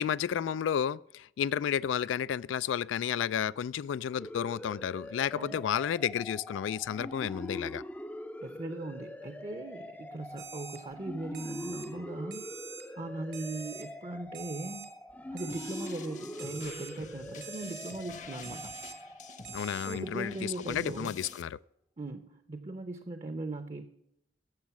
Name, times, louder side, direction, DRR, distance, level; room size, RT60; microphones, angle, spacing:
voice 1, 0.0-7.8 19.5-21.6, left 8 dB, 90° left, 0.3 m, -32 dB
sound 1, 4.2-20.6, left 1 dB, 10° left, 0.4 m, -44 dB
voice 2, 8.4-12.5 13.0-14.9 15.3-18.7 19.9-21.2 22.0-23.8, right 2 dB, 35° right, 0.6 m, -39 dB
Alarm, 10.4-10.8 11.3-11.9 12.3-12.8 13.3-13.8 14.3-14.9 15.4-15.9 16.4-16.9 17.4-17.9 18.4-18.9 19.4-20.0, right 8 dB, 80° right, 2.2 m, -45 dB
sound 2, 15.5-21.4, left 5 dB, 40° left, 0.8 m, -48 dB
11.5 x 7.4 x 5.9 m
head